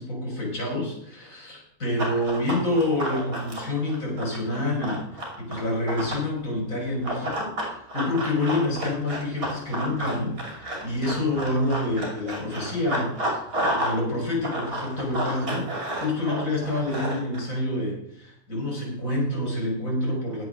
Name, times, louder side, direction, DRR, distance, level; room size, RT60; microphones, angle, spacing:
voice 1, 0.0-20.4, left 1 dB, 60° left, -2 dB, 4.7 m, -28 dB
Run, 2.0-6.3 7.0-14.0 14.3-17.4, right 1 dB, 70° right, 3.2 m, -31 dB
10.5 x 7.8 x 6.2 m, 0.73 s
omnidirectional pair, 1.5 m